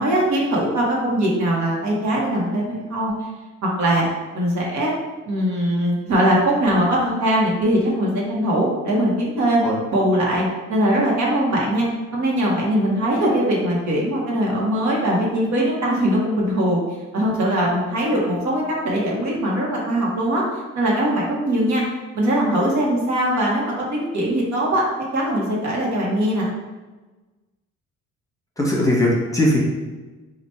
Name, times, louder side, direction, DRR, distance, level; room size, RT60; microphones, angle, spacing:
voice 1, 0.0-3.1 3.6-4.1 4.3-4.9 5.3-9.6 9.9-11.8 12.1-16.8 17.1-20.4 20.7-21.8 22.1-24.8 25.1-26.5, right 1 dB, 70° right, -3 dB, 1.2 m, -21 dB
voice 2, 28.6-29.6, left 1 dB, 10° left, -3 dB, 1.0 m, -19 dB
3.0 x 2.4 x 4.3 m, 1.2 s
cardioid pair, 90°, 30 cm